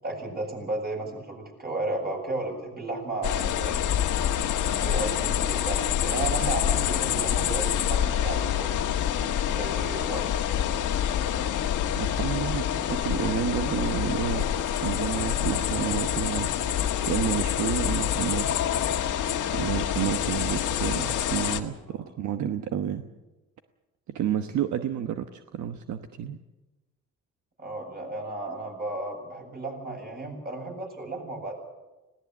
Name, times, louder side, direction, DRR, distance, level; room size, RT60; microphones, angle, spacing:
voice 1, 0.0-3.9 4.5-8.8 9.4-10.8 21.8-22.1 27.6-31.5, right 2 dB, 30° right, 1 dB, 7.9 m, -34 dB
sound 1, 3.2-21.6, left 10 dB, 80° left, 1.7 m, -26 dB
voice 2, 11.9-14.5 14.8-18.6 19.0-19.1 19.5-23.1 24.1-26.4, right 9 dB, 70° right, 8 dB, 1.1 m, -30 dB
20.0 x 18.0 x 8.2 m, 1.1 s
cardioid pair, 90°, 30 cm